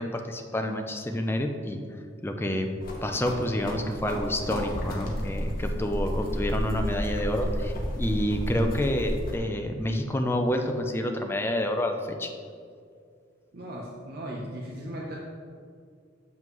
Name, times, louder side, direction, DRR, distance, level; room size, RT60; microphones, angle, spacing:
voice 1, 0.0-1.8 2.2-2.7 3.0-12.3, left 1 dB, 15° left, 4 dB, 0.5 m, -28 dB
sound 1, 2.8-9.4, equal, 50° left, 1.0 m, -32 dB
voice 2, 13.5-15.2, right 1 dB, 55° right, -3 dB, 0.7 m, -37 dB
7.5 x 5.5 x 3.1 m, 2.2 s
head